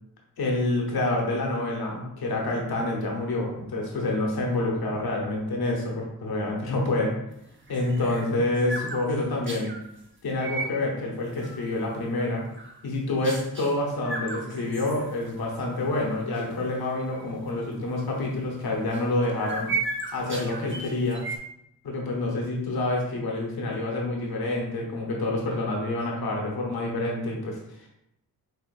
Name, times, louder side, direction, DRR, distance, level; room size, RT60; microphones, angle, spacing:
voice 1, 0.4-7.2 7.7-9.7 10.2-12.5 12.8-19.7 20.1-21.2 21.8-27.9, left 2 dB, 90° left, -1 dB, 1.0 m, -27 dB
sound 1, 7.4-9.8 10.3-10.7 11.2-11.8 12.2-12.8 13.2-13.7 14.0-15.5 15.8-15.9 16.3-16.6 17.1-17.2 18.6-21.4, right 3 dB, 35° right, 0.9 m, -35 dB
5.6 x 2.8 x 2.5 m, 0.81 s
cardioid pair, 55°, 36 cm